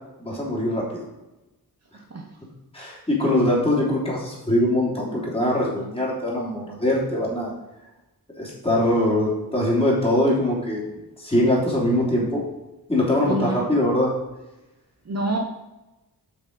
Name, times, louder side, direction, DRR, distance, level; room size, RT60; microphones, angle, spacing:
voice 1, 0.2-1.0 2.7-7.5 8.4-12.5 12.9-14.1, left 1 dB, 15° left, -5 dB, 3.3 m, -22 dB
voice 2, 13.2-13.7 15.1-15.4, right 1 dB, 40° right, 1 dB, 1.1 m, -26 dB
7.9 x 6.1 x 5.2 m, 1.0 s
wide cardioid pair, 135°, 39 cm